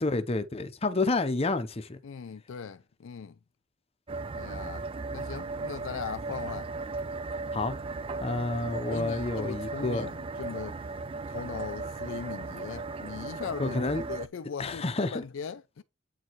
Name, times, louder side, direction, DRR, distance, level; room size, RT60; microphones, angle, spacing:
voice 1, 0.0-2.0 7.5-7.8 8.2-10.1 13.6-14.0 14.6-15.2, left 2 dB, 30° left, 0.7 m, -29 dB
voice 2, 2.0-3.4 4.3-6.7 7.6-7.7 8.7-10.8 11.3-15.8, left 6 dB, 65° left, 0.4 m, -39 dB
sound 1, 4.1-14.3, right 3 dB, 25° right, 0.3 m, -36 dB
8.3 x 4.5 x 3.0 m
head